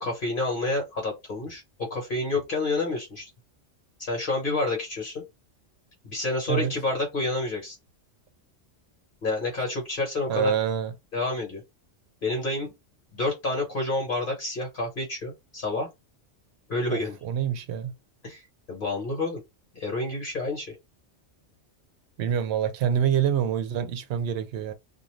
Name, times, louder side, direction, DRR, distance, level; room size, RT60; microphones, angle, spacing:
voice 1, 0.0-3.3 4.0-5.2 6.0-7.8 9.2-10.5 11.1-11.6 12.2-12.7 13.1-15.9 16.7-17.2 18.2-19.4 19.7-20.7, left 2 dB, 50° left, 1.1 m, -29 dB
voice 2, 10.3-10.9 16.9-17.9 22.2-24.7, right 9 dB, 70° right, 0.9 m, -26 dB
2.5 x 2.3 x 3.0 m
omnidirectional pair, 1.2 m